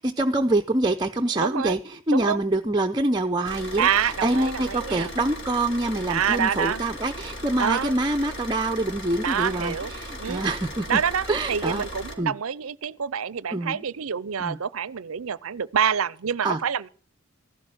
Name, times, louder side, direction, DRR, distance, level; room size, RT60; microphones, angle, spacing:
voice 1, 0.0-11.0 11.3-11.8 12.2-12.3 13.5-13.8 14.4-14.6 16.4-16.6, right 2 dB, 20° right, 0.6 m, -25 dB
voice 2, 1.4-1.8 2.1-2.4 3.8-5.1 6.1-6.8 7.6-7.9 9.2-9.9 10.2-10.5 10.9-16.9, right 7 dB, 80° right, 0.6 m, -27 dB
Car / Idling, 3.5-12.1, left 1 dB, 60° left, 2.8 m, -37 dB
14.5 x 12.0 x 6.3 m
head